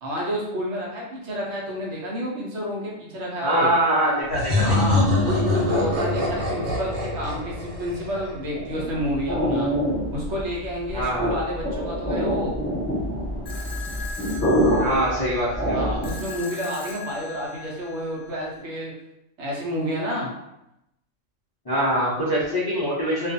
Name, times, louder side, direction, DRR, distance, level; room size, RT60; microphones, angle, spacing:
voice 1, 0.0-3.7 4.6-9.7 10.1-12.6 15.7-18.9 19.4-20.3, equal, 65° right, -3 dB, 0.9 m, -29 dB
voice 2, 3.4-4.8 10.9-11.3 14.8-15.9 21.7-23.3, right 1 dB, 35° left, -9 dB, 0.3 m, -23 dB
sound 1, 4.3-8.9, left 2 dB, 85° right, 1.2 m, -24 dB
sound 2, 8.5-16.3, equal, 5° left, 1.2 m, -26 dB
sound 3, 13.5-18.5, left 4 dB, 60° left, 0.8 m, -39 dB
2.4 x 2.3 x 2.6 m, 0.86 s
omnidirectional pair, 1.3 m